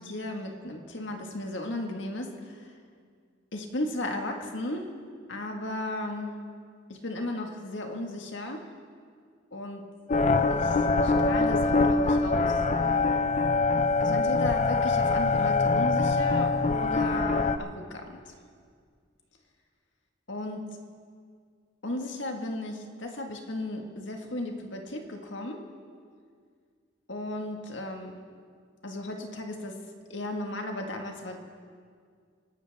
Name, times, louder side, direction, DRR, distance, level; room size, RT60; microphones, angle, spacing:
voice 1, 0.0-2.7 3.5-4.9 5.3-6.4 6.9-8.7 9.5-9.9 10.5-10.8 11.0-12.6 14.0-18.2 20.3-20.7 21.8-25.7 27.1-28.2 28.8-29.8 30.1-31.4, left 1 dB, 70° left, 3 dB, 1.7 m, -35 dB
sound 1, 10.1-17.6, left 3 dB, 35° left, 0.5 m, -24 dB
28.0 x 12.5 x 3.6 m, 2.1 s
head